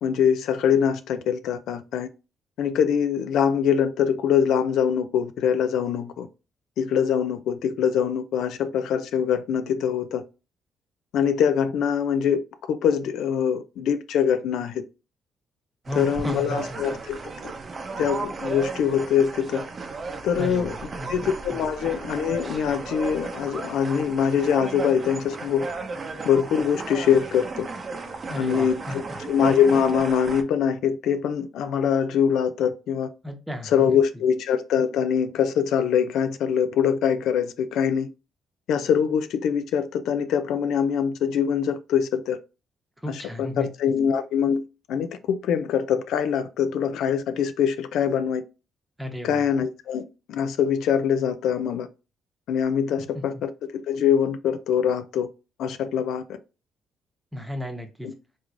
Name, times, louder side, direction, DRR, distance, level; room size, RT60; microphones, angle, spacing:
voice 1, 0.0-2.1 2.6-6.3 6.8-10.2 11.1-12.4 12.7-14.8 15.9-17.2 18.0-19.6 20.2-20.8 21.1-25.7 26.2-27.7 28.3-33.1 33.6-38.1 38.7-42.4 43.1-44.6 44.9-48.4 49.2-51.9 52.5-53.5 53.9-55.3 55.6-56.2 58.0-58.1, left 8 dB, 80° left, 0.3 m, -23 dB
sound 1, 15.8-30.4, right 4 dB, 40° right, 0.6 m, -34 dB
voice 2, 15.9-16.8 20.4-20.7 21.0-21.1 21.5-21.6 28.3-29.2 33.2-34.0 43.0-43.7 49.0-49.4 53.1-53.2 57.3-58.1, equal, 5° right, 0.9 m, -34 dB
3.6 x 3.1 x 2.5 m
cardioid pair, 90°, 0 cm